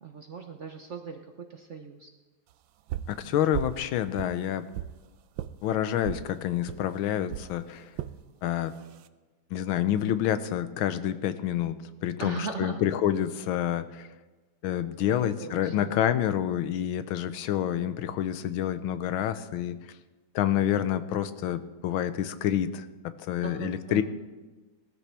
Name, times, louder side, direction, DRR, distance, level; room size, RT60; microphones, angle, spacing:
voice 1, 0.0-2.1 3.2-3.5 12.2-12.8 15.2-16.0 17.7-18.1 23.4-24.0, right 5 dB, 55° right, 4 dB, 0.8 m, -39 dB
sound 1, 2.9-3.2 3.5-3.8 4.2-5.0 5.4-5.5 6.0-6.3 6.7-6.8 7.3-7.5 8.0-8.2 8.7-9.1, right 12 dB, 75° right, 1.2 m, -35 dB
voice 2, 3.1-4.7 5.6-7.9 8.4-8.7 9.5-14.1 14.6-19.8 20.3-24.0, left 10 dB, 90° left, 12 dB, 1.5 m, -28 dB
18.5 x 13.5 x 3.4 m, 1.2 s
omnidirectional pair, 2.2 m